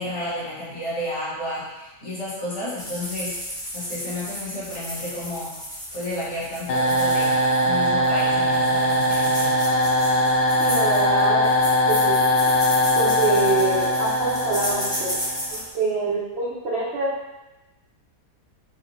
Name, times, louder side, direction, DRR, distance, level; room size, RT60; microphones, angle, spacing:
voice 1, 0.0-3.4 3.7-5.5 5.9-7.4 7.6-9.6, left 1 dB, 45° left, -8 dB, 1.6 m, -31 dB
sound 1, 2.8-15.7, equal, 5° left, 0.5 m, -34 dB
sound 2, 6.7-15.6, equal, 80° left, 0.6 m, -21 dB
voice 2, 10.6-11.5 11.9-12.2 13.0-15.2 15.5-17.2, right 3 dB, 60° right, -7 dB, 0.7 m, -25 dB
4.3 x 2.1 x 4.0 m, 1.0 s
omnidirectional pair, 1.7 m